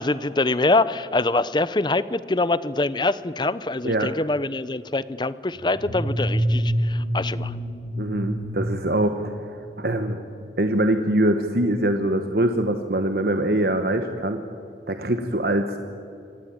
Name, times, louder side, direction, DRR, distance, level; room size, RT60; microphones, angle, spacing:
voice 1, 0.0-7.5, left 2 dB, 25° left, 17 dB, 0.6 m, -24 dB
sound 1, 5.6-9.7, equal, 60° left, 6.6 m, -27 dB
voice 2, 8.0-10.2 10.6-14.4 14.9-15.8, right 1 dB, 60° right, 7 dB, 1.2 m, -23 dB
26.0 x 18.5 x 8.8 m, 2.5 s
head